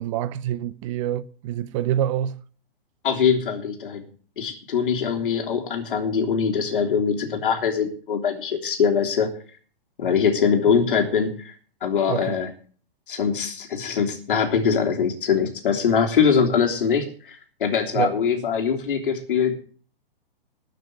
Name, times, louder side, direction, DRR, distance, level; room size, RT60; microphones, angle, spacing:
voice 1, 0.0-2.4 12.1-12.4 17.9-18.1, right 11 dB, 35° right, 0.6 m, -26 dB
voice 2, 3.0-4.0 4.4-9.3 10.0-11.5 11.8-12.5 13.1-19.6, left 6 dB, 65° left, 3.3 m, -22 dB
13.5 x 6.6 x 9.3 m
hypercardioid pair, 125°, 29 cm